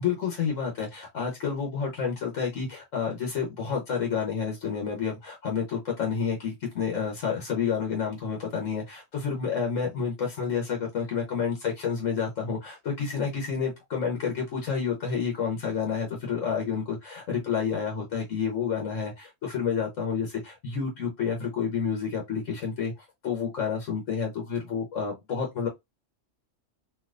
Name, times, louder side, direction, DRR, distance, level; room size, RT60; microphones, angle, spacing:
voice 1, 0.0-25.7, left 6 dB, 80° left, 1.3 m, -29 dB
3.3 x 2.9 x 2.4 m
omnidirectional pair, 1.3 m